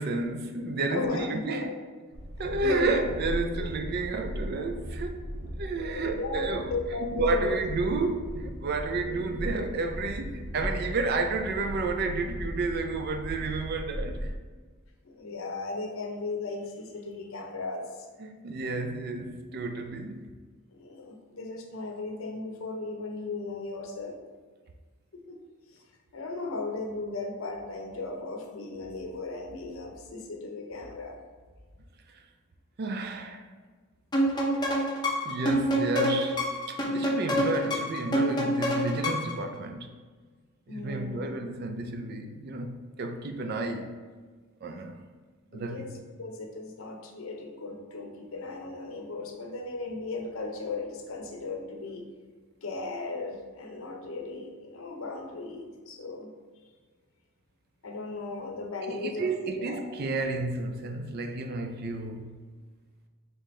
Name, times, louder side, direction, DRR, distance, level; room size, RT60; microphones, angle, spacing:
voice 1, 0.0-1.7 2.4-5.2 5.6-6.7 7.0-14.3 18.2-20.3 32.1-32.2 32.8-33.5 35.2-40.0 40.7-44.0 44.6-45.0 45.5-45.9 58.9-62.4, right 3 dB, 45° right, 0.4 m, -31 dB
voice 2, 0.9-1.8 2.3-3.1 3.6-3.7 5.7-7.6 9.0-9.2 15.0-18.0 20.7-24.2 25.1-25.4 25.7-25.8 26.1-31.2 40.7-41.4 45.5-45.9 46.2-52.1 52.6-56.3 57.8-60.0, left 3 dB, 70° left, 0.7 m, -36 dB
Train, 2.1-14.3, equal, 85° right, 0.7 m, -37 dB
sound 1, 34.1-39.4, equal, 20° left, 0.6 m, -27 dB
4.1 x 3.6 x 3.2 m
head